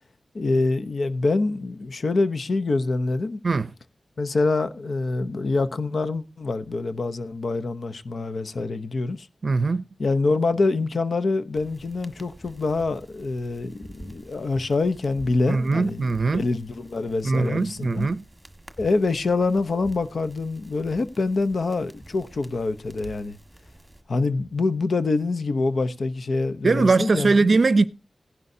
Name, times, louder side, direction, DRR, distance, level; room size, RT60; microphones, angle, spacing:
voice 1, 0.3-3.4 4.2-9.3 10.0-18.1 18.8-23.4 24.1-27.5, left 3 dB, 65° left, 0.8 m, -25 dB
voice 2, 9.4-9.8 15.5-16.4 17.2-18.2 26.6-27.9, right 3 dB, 55° right, 0.5 m, -21 dB
sound 1, 11.5-24.0, right 1 dB, 10° right, 1.6 m, -48 dB
16.5 x 11.0 x 2.7 m
wide cardioid pair, 115°, 0 cm